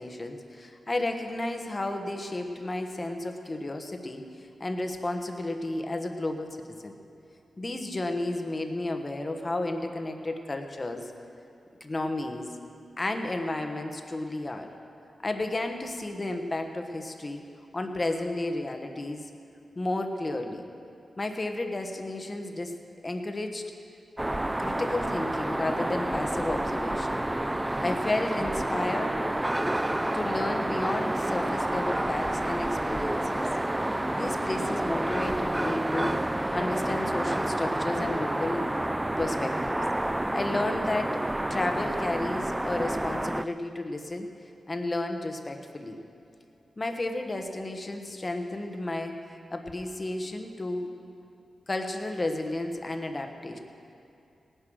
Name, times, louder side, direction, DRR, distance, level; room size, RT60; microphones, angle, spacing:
voice 1, 0.0-4.2 4.6-7.0 7.6-11.1 11.8-12.5 13.0-14.7 15.2-17.5 17.7-19.3 19.7-20.6 21.2-22.7 23.0-23.7 24.6-27.2 27.8-29.2 30.1-33.5 34.1-36.2 36.5-38.7 39.2-39.8 40.3-44.3 44.7-46.0 46.8-49.2 49.5-50.9 51.7-53.6, left 2 dB, 25° left, 5 dB, 1.2 m, -32 dB
sound 1, 24.2-43.5, right 1 dB, 10° right, 0.3 m, -29 dB
18.0 x 10.0 x 6.3 m, 2.6 s
wide cardioid pair, 110°, 0 cm